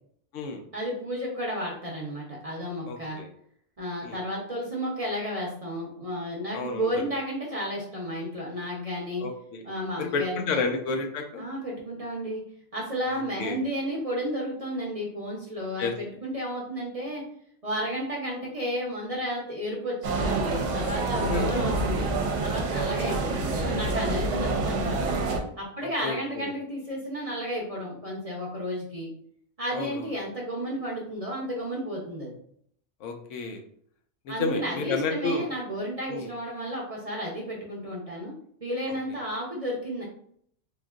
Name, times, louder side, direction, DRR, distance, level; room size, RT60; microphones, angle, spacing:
voice 1, 0.7-3.2 3.8-9.2 9.6-10.7 11.4-12.4 12.7-17.2 17.6-22.1 22.4-25.1 25.6-29.1 29.6-32.3 34.3-38.3 38.6-40.0, equal, 35° right, -4 dB, 0.6 m, -32 dB
voice 2, 2.9-3.3 4.0-4.2 6.5-6.9 9.2-9.6 10.0-11.4 13.1-13.6 15.8-15.9 21.1-21.8 22.7-23.1 26.0-26.5 29.7-30.1 33.0-33.6 34.3-35.5 36.1-36.3, left 3 dB, 75° left, 4 dB, 0.9 m, -31 dB
sound 1, 20.0-25.4, right 3 dB, 75° right, 0.9 m, -27 dB
3.7 x 2.6 x 2.3 m, 0.63 s
omnidirectional pair, 1.3 m